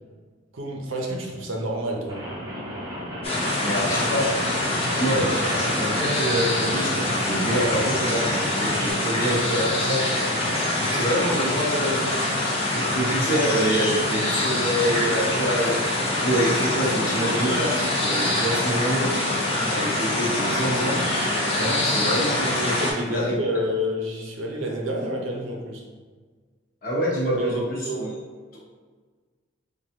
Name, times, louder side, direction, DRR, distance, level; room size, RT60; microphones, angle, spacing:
voice 1, 0.5-2.2 22.6-25.8 27.2-28.0, equal, 80° right, 0 dB, 0.6 m, -29 dB
Rain, 2.1-8.9, equal, 20° right, 0.7 m, -35 dB
sound 1, 3.2-22.9, left 1 dB, 30° left, 0.6 m, -25 dB
voice 2, 3.6-4.3 5.0-10.0 10.9-12.0 12.7-15.8 16.2-19.2 19.5-21.0 21.5-22.8 23.1-23.4 26.8-27.6 28.0-28.1, equal, 45° left, -6 dB, 1.0 m, -26 dB
4.6 x 2.3 x 2.8 m, 1.5 s
head